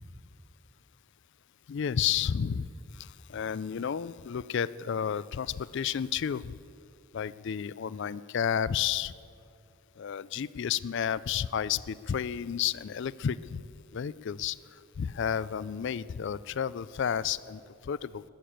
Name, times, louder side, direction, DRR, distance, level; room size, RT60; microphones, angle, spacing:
voice 1, 1.7-2.7 3.0-6.5 7.1-9.1 10.0-13.6 13.9-14.6 15.0-18.2, left 8 dB, 55° left, 19 dB, 0.3 m, -31 dB
20.0 x 6.8 x 8.7 m, 2.5 s
head